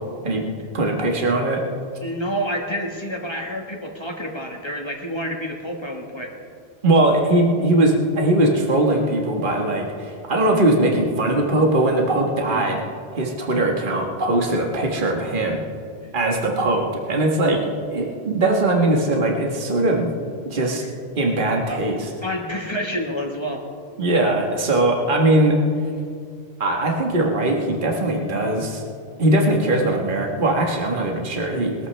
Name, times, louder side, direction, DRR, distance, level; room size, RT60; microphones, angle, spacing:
voice 1, 0.7-1.6 6.8-12.8 13.1-15.6 16.1-17.6 17.9-20.1 20.5-20.8 21.1-22.1 24.0-25.6 26.6-28.8 29.2-31.9, right 1 dB, 50° right, 1 dB, 1.6 m, -20 dB
voice 2, 2.0-6.3 12.4-12.7 21.7-21.8 22.2-23.6, equal, 25° left, 1 dB, 1.5 m, -28 dB
21.0 x 13.5 x 3.3 m, 2.2 s
omnidirectional pair, 1.1 m